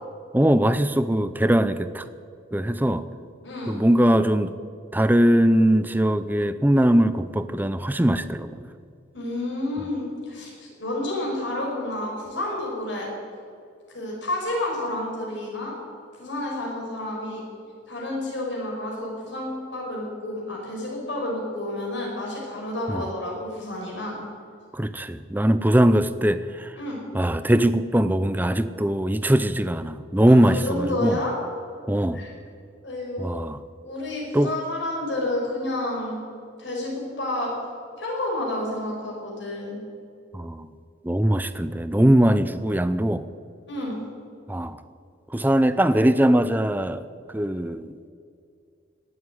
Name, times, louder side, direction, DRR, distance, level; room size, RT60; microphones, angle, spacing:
voice 1, 0.3-2.1 2.5-3.1 3.7-4.5 4.9-8.7 22.9-23.1 24.7-26.7 27.1-31.2 31.9-32.2 33.2-33.6 34.3-34.5 40.3-40.7 41.0-43.3 44.5-44.8 45.3-47.0 47.3-47.9, right 1 dB, 10° right, 13 dB, 0.5 m, -21 dB
voice 2, 3.4-3.8 9.1-13.1 13.9-15.7 16.2-17.4 17.9-24.1 26.8-27.0 30.5-31.3 32.1-32.3 32.8-33.4 33.8-36.2 36.6-37.5 38.0-39.8 43.7-44.0, left 1 dB, 60° left, -2 dB, 5.4 m, -30 dB
18.0 x 8.0 x 9.3 m, 2.4 s
head